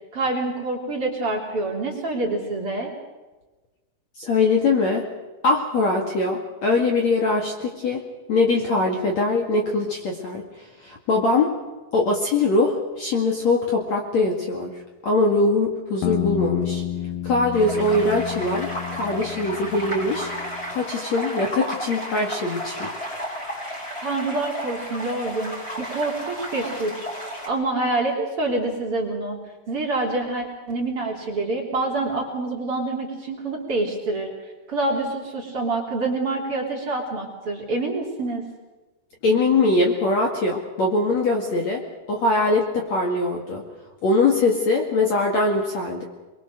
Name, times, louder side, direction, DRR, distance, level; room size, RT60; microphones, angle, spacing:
voice 1, 0.1-2.9 24.0-27.1 27.5-29.4 29.7-34.3 34.7-38.4, right 2 dB, 35° right, -1 dB, 3.8 m, -26 dB
voice 2, 4.2-5.0 5.4-8.0 8.3-10.5 10.8-11.5 11.9-14.7 15.0-16.8 17.2-20.3 20.7-22.9 39.2-41.8 42.1-43.6 44.0-46.0, left 3 dB, 50° left, 0 dB, 2.8 m, -22 dB
sound 1, 16.0-20.7, left 11 dB, 65° left, 2.3 m, -30 dB
sound 2, 17.5-27.5, equal, 15° left, 4.8 m, -33 dB
23.5 x 23.0 x 6.6 m, 1.2 s
omnidirectional pair, 5.0 m